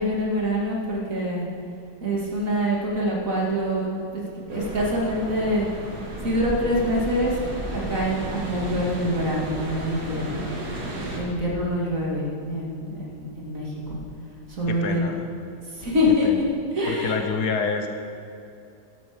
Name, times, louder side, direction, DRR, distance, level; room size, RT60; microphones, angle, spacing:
voice 1, 0.0-1.5 2.0-5.7 6.2-7.4 7.7-10.5 11.2-14.0 14.5-15.1 15.7-16.4 16.7-17.2, equal, 50° right, -4 dB, 2.8 m, -25 dB
sound 1, 4.5-11.2, right 1 dB, 65° right, 2.5 m, -33 dB
voice 2, 14.7-15.2 16.2-16.4 16.9-17.9, left 5 dB, 70° left, 5 dB, 1.5 m, -27 dB
14.0 x 11.0 x 5.2 m, 2.6 s
omnidirectional pair, 1.8 m